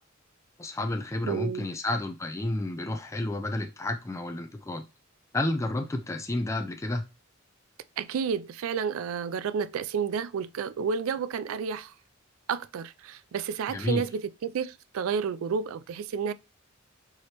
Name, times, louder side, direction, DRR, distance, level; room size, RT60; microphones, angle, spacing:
voice 1, 0.6-4.8 5.3-7.0 13.7-14.0, left 2 dB, 15° left, 0.4 m, -31 dB
voice 2, 1.3-1.7 8.0-11.9 12.5-16.3, right 6 dB, 90° right, 0.3 m, -31 dB
4.8 x 3.0 x 2.9 m
head